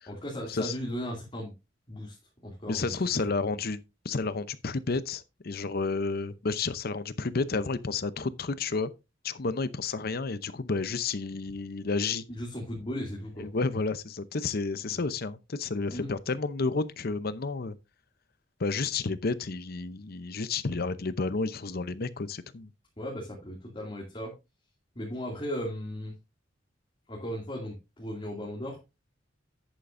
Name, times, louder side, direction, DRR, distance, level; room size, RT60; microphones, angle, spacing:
voice 1, 0.1-1.5 1.9-2.2 2.4-3.2 12.3-13.5 14.9-15.0 15.9-16.1 23.0-24.3 24.9-26.1 27.1-28.8, equal, 30° left, 2.6 m, -36 dB
voice 2, 2.7-8.9 9.2-12.2 13.4-17.8 18.6-22.7, left 4 dB, 55° left, 0.7 m, -31 dB
10.5 x 9.2 x 2.6 m
head